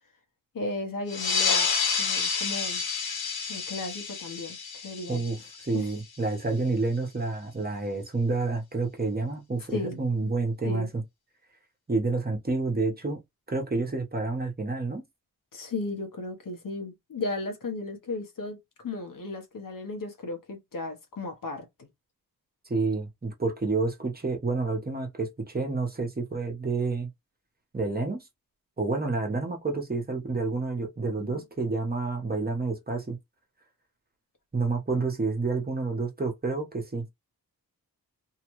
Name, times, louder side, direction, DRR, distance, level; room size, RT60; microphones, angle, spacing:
voice 1, 0.5-2.8 3.5-4.6 4.8-5.2 5.7-5.9 9.7-10.0 10.6-10.9 15.5-21.9 31.2-31.4, left 2 dB, 65° left, 1.1 m, -35 dB
sound 1, 1.1-6.2, left 5 dB, 85° left, 1.2 m, -29 dB
voice 2, 5.1-11.0 11.9-13.2 13.5-15.0 22.6-27.1 27.7-28.3 28.8-33.2 34.5-37.1, right 3 dB, 25° right, 1.1 m, -29 dB
2.8 x 2.4 x 3.1 m
cardioid pair, 75°, 36 cm